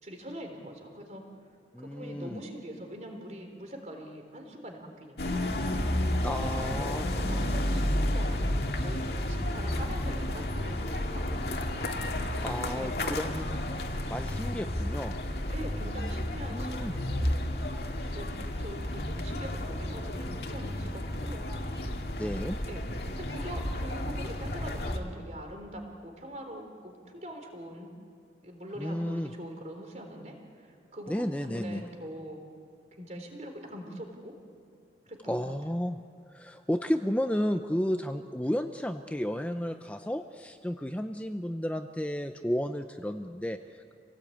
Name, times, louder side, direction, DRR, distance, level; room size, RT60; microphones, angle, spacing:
voice 1, 0.0-1.2 1.8-5.6 6.2-8.6 8.8-11.4 12.4-13.3 15.5-17.3 18.1-21.4 22.7-27.9 28.4-32.4 33.0-34.3 35.1-35.5, equal, 40° right, 3 dB, 3.7 m, -43 dB
voice 2, 1.7-2.4 6.2-7.6 12.4-13.6 14.1-15.2 16.5-17.0 22.2-22.6 28.8-29.3 31.1-31.8 35.3-36.0 36.3-43.9, equal, 10° left, 7 dB, 0.6 m, -32 dB
sound 1, 5.2-25.0, left 1 dB, 65° left, 2.2 m, -32 dB
27.0 x 18.0 x 8.7 m, 2.3 s
head